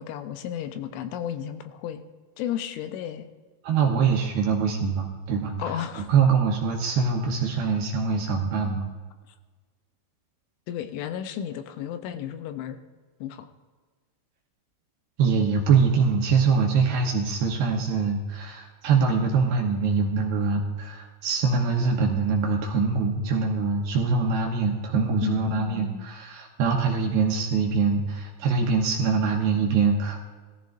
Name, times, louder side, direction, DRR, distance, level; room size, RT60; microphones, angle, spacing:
voice 1, 0.0-2.0 2.4-3.3 5.6-6.1 10.7-12.8 13.2-13.5 25.2-26.1, left 9 dB, 85° left, 8 dB, 3.2 m, -33 dB
voice 2, 3.6-8.9 15.2-30.3, right 5 dB, 75° right, 0 dB, 2.5 m, -24 dB
17.5 x 14.5 x 2.6 m, 1.4 s
omnidirectional pair, 5.5 m